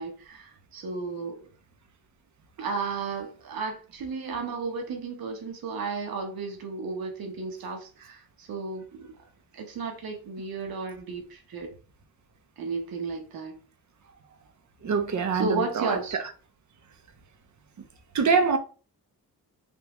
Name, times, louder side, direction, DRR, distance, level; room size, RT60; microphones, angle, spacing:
voice 1, 0.0-1.4 2.6-9.1 9.5-11.7 12.6-13.6 15.3-16.2, right 4 dB, 65° right, 1.0 m, -33 dB
voice 2, 14.8-15.9 18.1-18.6, right 5 dB, 50° right, 0.7 m, -24 dB
3.5 x 2.6 x 3.0 m
cardioid pair, 80°, 38 cm